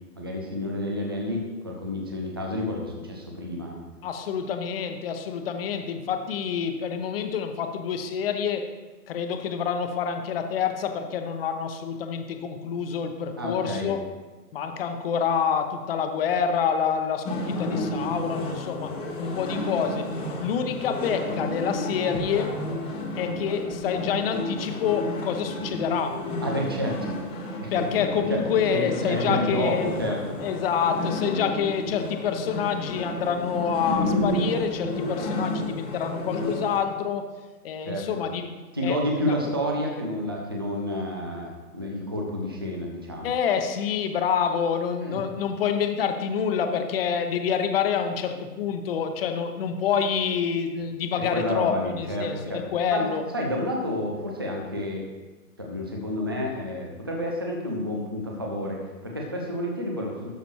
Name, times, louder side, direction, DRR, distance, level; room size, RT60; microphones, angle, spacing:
voice 1, 0.2-3.8 13.4-13.9 26.4-27.1 27.6-27.8 28.3-28.4 28.7-30.2 37.8-38.1 38.7-43.3 45.0-45.2 51.3-52.6 52.9-53.1 53.3-55.1 55.6-60.3, left 1 dB, 15° right, -1 dB, 0.4 m, -30 dB
voice 2, 4.0-8.7 9.1-14.0 14.5-22.5 23.2-26.2 27.7-29.9 30.4-37.3 37.6-38.5 38.8-39.0 39.3-39.4 43.2-53.2, left 7 dB, 35° left, 6 dB, 1.0 m, -27 dB
sound 1, 17.2-36.8, left 1 dB, 10° left, 1.0 m, -31 dB
12.5 x 6.3 x 3.1 m, 1.2 s
hypercardioid pair, 135°, 48 cm